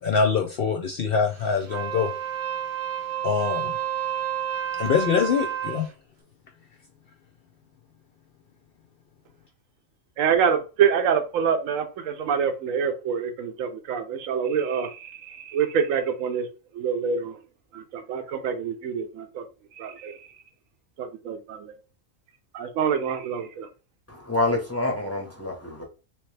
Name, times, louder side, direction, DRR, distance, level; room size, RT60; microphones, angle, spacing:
voice 1, 0.0-2.1 3.2-3.8 4.8-5.9, left 6 dB, 65° left, 0.6 m, -24 dB
Wind instrument woodwind instrument, 1.6-5.9, right 10 dB, 60° right, 0.6 m, -30 dB
voice 2, 10.2-16.5 16.7-17.4 17.7-19.4 19.8-20.2 21.0-21.7 22.5-23.4, right 7 dB, 80° right, 1.0 m, -26 dB
voice 3, 24.1-25.8, left 2 dB, 15° left, 0.7 m, -27 dB
3.4 x 3.0 x 3.2 m
omnidirectional pair, 1.4 m